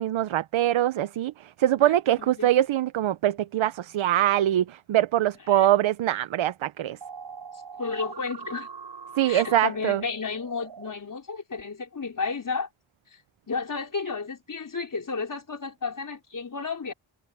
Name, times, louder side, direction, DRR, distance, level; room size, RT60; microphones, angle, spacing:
voice 1, 0.0-7.0 9.2-10.0, right 12 dB, 85° right, 0.6 m, -23 dB
sound 1, 7.0-10.9, right 5 dB, 60° right, 6.2 m, -42 dB
voice 2, 7.8-8.7 9.3-12.7 13.5-16.9, left 4 dB, 45° left, 4.5 m, -32 dB
wide cardioid pair, 175°, 46 cm